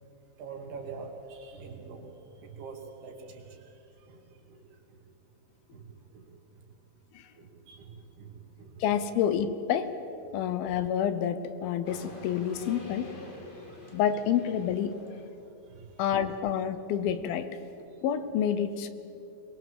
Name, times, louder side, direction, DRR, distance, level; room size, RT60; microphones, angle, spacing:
voice 1, 0.4-5.0 5.7-6.6 7.4-8.8 13.5-14.0 15.7-16.0, right 4 dB, 75° right, 2 dB, 4.3 m, -46 dB
voice 2, 8.8-9.9 10.3-13.1 13.9-15.0 16.0-17.6 18.0-18.9, left 9 dB, 75° left, 11 dB, 2.6 m, -28 dB
sound 1, 11.8-15.3, left 2 dB, 30° left, 1.0 m, -46 dB
22.5 x 21.5 x 7.7 m, 2.9 s
omnidirectional pair, 4.6 m